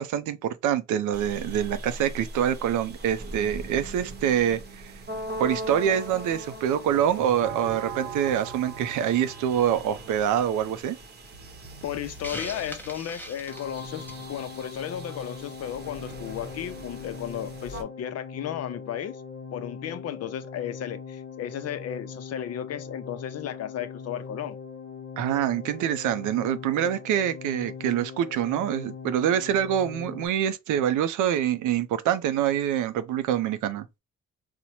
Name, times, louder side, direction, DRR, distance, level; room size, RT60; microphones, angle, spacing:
voice 1, 0.0-4.8 5.4-11.0 25.2-33.9, right 10 dB, 80° right, 0.5 m, -25 dB
sound 1, 1.1-17.8, right 2 dB, 35° right, 0.8 m, -40 dB
voice 2, 11.8-19.2 19.5-24.6, left 10 dB, 55° left, 0.5 m, -34 dB
Hiss, 12.2-14.3, equal, 5° left, 0.7 m, -39 dB
sound 2, 13.5-30.3, left 5 dB, 40° left, 0.9 m, -41 dB
4.1 x 2.1 x 2.9 m
cardioid pair, 90°, 30 cm